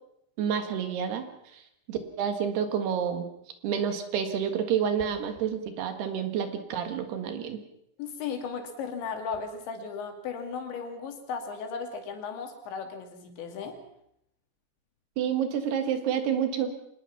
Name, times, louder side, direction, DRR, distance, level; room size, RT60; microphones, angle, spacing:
voice 1, 0.4-1.3 1.5-1.6 1.9-3.3 3.6-7.6 15.2-16.7, right 8 dB, 70° right, 8 dB, 3.7 m, -29 dB
voice 2, 8.0-13.8, left 5 dB, 85° left, 5 dB, 4.8 m, -36 dB
25.0 x 19.5 x 5.9 m, 0.76 s
omnidirectional pair, 5.0 m